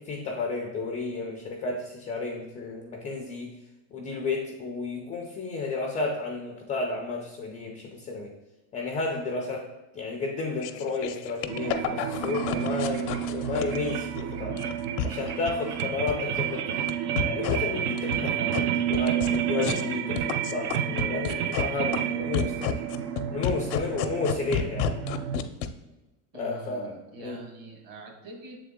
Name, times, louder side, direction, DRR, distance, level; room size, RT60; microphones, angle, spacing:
voice 1, 0.0-3.5 3.9-8.3 8.7-9.7 9.9-14.6 15.0-16.8 17.2-22.8 23.3-25.0 26.3-27.4, left 3 dB, 20° left, 1 dB, 0.3 m, -32 dB
sound 1, 10.6-14.2 14.6-15.8 16.1-16.9 17.2-17.6 18.0-18.6 18.9-19.8 20.2-21.6 21.9-22.0 22.3-25.7, left 10 dB, 80° left, 0.7 m, -30 dB
sound 2, 11.5-25.4, right 10 dB, 65° right, 0.7 m, -30 dB
voice 2, 26.3-28.6, right 3 dB, 45° right, 2 dB, 1.7 m, -44 dB
7.0 x 3.8 x 3.5 m, 1.1 s
supercardioid pair, 135°, 47 cm